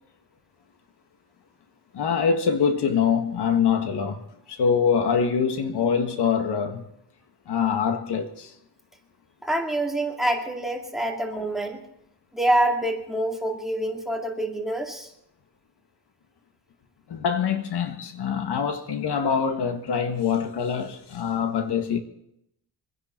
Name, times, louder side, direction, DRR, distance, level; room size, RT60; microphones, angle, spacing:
voice 1, 1.9-4.2 4.5-6.8 7.5-8.5 17.1-22.0, left 6 dB, 70° left, 1.8 m, -24 dB
voice 2, 9.4-11.8 12.3-15.1, right 1 dB, ahead, 2.4 m, -26 dB
25.0 x 10.5 x 4.5 m
cardioid pair, 130°, 41 cm